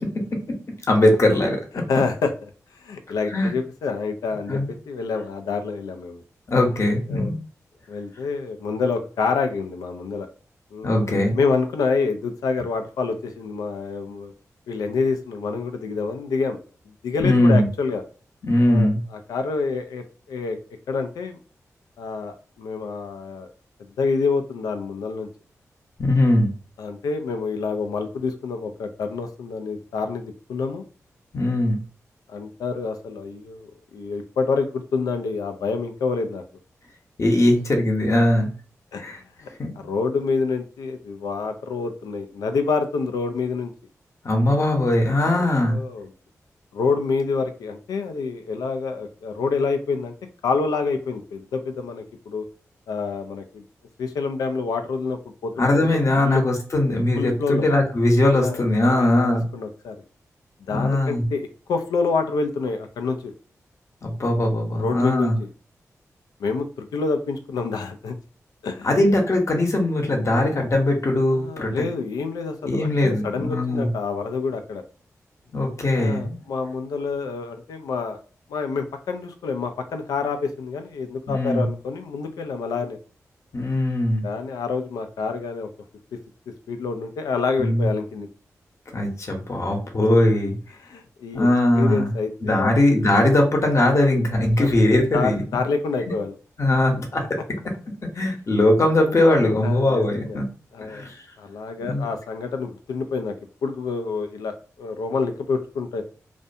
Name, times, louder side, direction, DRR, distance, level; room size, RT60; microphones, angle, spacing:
voice 1, 0.9-1.8 3.3-3.5 4.5-4.7 6.5-7.3 10.8-11.3 17.2-17.6 18.4-19.0 26.0-26.5 31.3-31.8 37.2-38.5 39.0-39.2 39.6-39.7 44.2-45.8 55.6-59.4 60.7-61.2 64.0-65.4 68.8-71.8 72.6-73.9 75.5-76.4 81.3-81.7 83.5-84.2 87.6-87.9 88.9-90.6 91.3-92.1 92.4-95.4 96.6-97.4 98.1-100.4 100.9-101.1 101.8-102.0, left 1 dB, 50° left, 2 dB, 0.9 m, -20 dB
voice 2, 1.9-2.3 2.8-6.2 7.1-7.3 7.9-10.3 10.7-10.9 11.3-14.3 14.7-16.6 17.0-18.0 18.7-20.6 20.9-21.4 22.0-23.5 24.0-25.3 26.8-30.8 32.3-36.4 38.9-39.0 39.4-39.5 39.8-43.7 45.3-46.1 46.7-50.1 50.4-52.5 52.9-53.6 54.0-56.4 57.2-57.7 58.4-60.0 60.7-63.3 64.8-65.3 66.4-68.2 68.6-69.0 70.5-70.6 71.3-74.8 75.9-78.2 78.5-83.0 84.2-85.7 86.7-88.3 90.8-91.5 91.8-92.7 94.6-94.7 95.1-96.3 99.6-100.4 100.7-101.1 101.4-103.3 103.6-106.0, left 4 dB, 85° left, 6 dB, 0.3 m, -27 dB
2.5 x 2.2 x 2.6 m, 0.39 s
cardioid pair, 45°, 6 cm